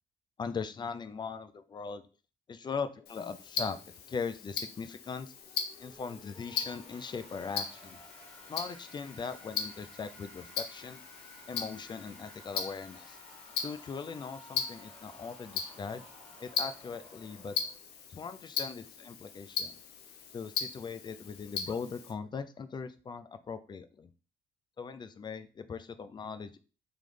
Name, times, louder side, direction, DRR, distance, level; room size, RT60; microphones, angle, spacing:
voice 1, 0.4-2.0 2.5-3.8 4.1-5.3 5.8-8.0 8.5-11.0 11.5-13.2 13.6-16.0 16.4-17.6 18.1-19.8 20.3-24.1 24.8-26.6, left 5 dB, 25° left, 11 dB, 0.4 m, -40 dB
Tick-tock, 3.1-22.1, left 6 dB, 70° left, 0.8 m, -39 dB
sound 1, 5.1-17.8, equal, 5° left, 1.8 m, -55 dB
3.4 x 3.1 x 3.8 m, 0.36 s
cardioid pair, 110°, 17 cm